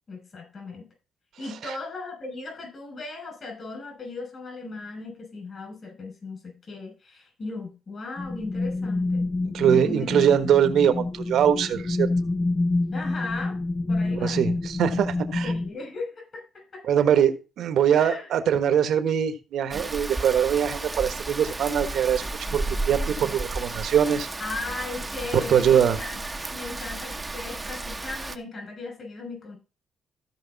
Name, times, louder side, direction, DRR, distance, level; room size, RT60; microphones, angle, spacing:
voice 1, 0.1-0.9 1.4-9.2 9.6-10.2 12.9-13.6 13.9-14.4 15.4-16.9 17.9-18.3 24.4-29.6, left 3 dB, 45° left, 2 dB, 6.4 m, -37 dB
sound 1, 8.2-15.7, left 2 dB, 25° left, 0.5 m, -27 dB
voice 2, 9.5-12.1 14.1-15.5 16.9-22.2 22.5-24.3 25.3-26.0, right 9 dB, 70° right, 10 dB, 1.4 m, -22 dB
Rain, 19.7-28.4, right 2 dB, 20° right, 1.0 m, -33 dB
15.5 x 5.2 x 4.0 m, 0.31 s
cardioid pair, 90°, 0 cm